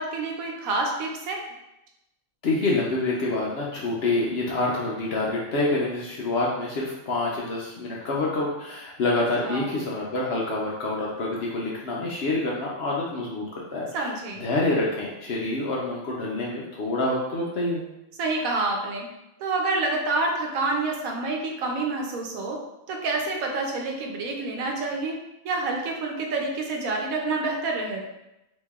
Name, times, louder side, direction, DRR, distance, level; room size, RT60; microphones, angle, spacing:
voice 1, 0.0-1.4 9.4-9.7 13.9-14.4 18.2-19.1 19.4-22.6 22.9-25.2 25.4-28.0, right 3 dB, 75° right, 1 dB, 1.0 m, -28 dB
voice 2, 2.4-13.4 13.7-13.9 14.4-17.8, left 2 dB, 60° left, -4 dB, 0.7 m, -27 dB
3.0 x 2.6 x 3.5 m, 0.92 s
omnidirectional pair, 1.5 m